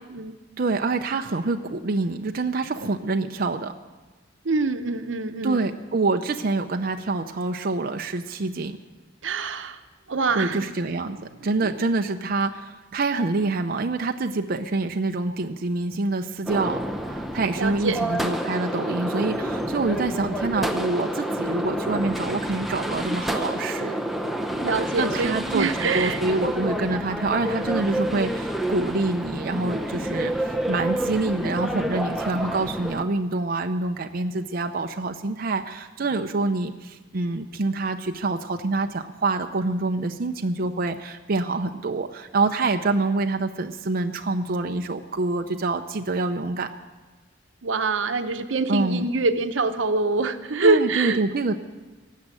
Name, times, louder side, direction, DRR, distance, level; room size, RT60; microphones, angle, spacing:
voice 1, 0.6-3.7 5.4-8.8 10.3-11.2 11.4-23.9 25.0-46.7 48.7-49.1 50.6-51.5, right 3 dB, 50° right, 5 dB, 0.6 m, -26 dB
voice 2, 4.4-5.6 9.2-9.8 10.1-10.7 11.6-11.7 17.6-18.0 24.6-26.2 47.6-51.2, right 3 dB, 85° right, 9 dB, 0.9 m, -25 dB
sound 1, 16.5-33.0, right 1 dB, ahead, 0.8 m, -29 dB
17.5 x 7.5 x 9.0 m, 1.2 s
head